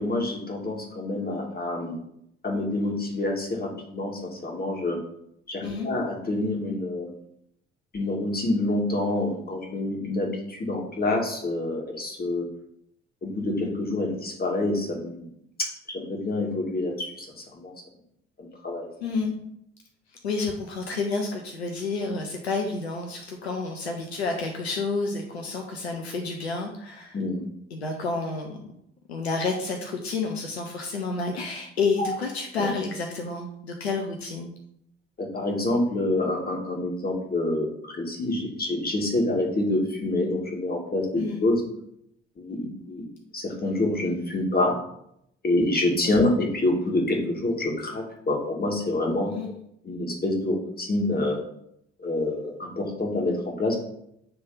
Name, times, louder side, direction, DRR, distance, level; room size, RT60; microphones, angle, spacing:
voice 1, 0.0-1.9 2.4-5.0 5.5-7.1 7.9-12.4 13.2-15.3 15.6-17.7 18.4-19.3 27.1-27.5 32.0-32.2 32.6-32.7 35.2-41.6 42.4-43.1 43.3-44.7 45.4-49.3 49.8-51.4 52.0-53.8, left 2 dB, 30° left, 0 dB, 1.9 m, -27 dB
voice 2, 19.0-19.3 20.2-27.2 27.7-28.6 29.1-34.5 41.2-41.4 49.3-49.5, left 4 dB, 80° left, 2 dB, 0.7 m, -30 dB
8.4 x 3.4 x 3.9 m, 0.75 s
figure-of-eight pair, 50°, 31 cm